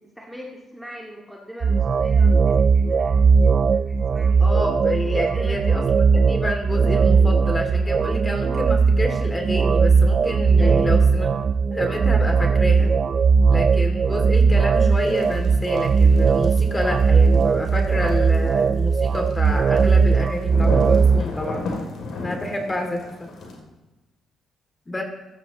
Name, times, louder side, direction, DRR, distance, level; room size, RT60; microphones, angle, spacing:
voice 1, 0.0-4.4 5.2-5.6 10.6-11.0, equal, ahead, -2 dB, 2.0 m, -40 dB
sound 1, 1.6-21.2, right 5 dB, 45° right, 0.4 m, -18 dB
voice 2, 4.4-5.8 6.1-11.3 11.7-12.9 13.5-21.6 22.2-23.0 24.9-25.0, left 1 dB, 20° left, 4 dB, 2.6 m, -28 dB
sound 2, 14.7-23.6, left 3 dB, 70° left, 3.0 m, -34 dB
16.0 x 13.0 x 3.1 m, 1.1 s
cardioid pair, 90°, 0 cm